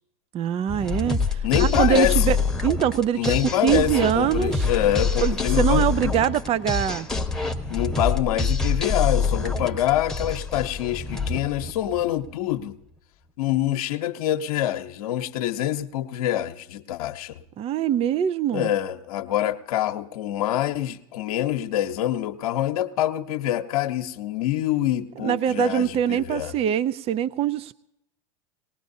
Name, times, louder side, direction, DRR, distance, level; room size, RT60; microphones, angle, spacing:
voice 1, 0.3-2.4 2.6-3.4 3.6-4.7 5.2-7.1 17.6-18.7 25.2-27.7, right 10 dB, 35° right, 17 dB, 0.4 m, -23 dB
sound 1, 0.7-12.3, left 4 dB, 5° left, 1.2 m, -26 dB
voice 2, 1.4-2.4 3.1-6.2 7.7-12.8 13.4-17.3 18.5-26.5, left 12 dB, 80° left, 5 dB, 0.8 m, -25 dB
20.0 x 18.5 x 2.7 m, 0.82 s
hypercardioid pair, 105°, 19 cm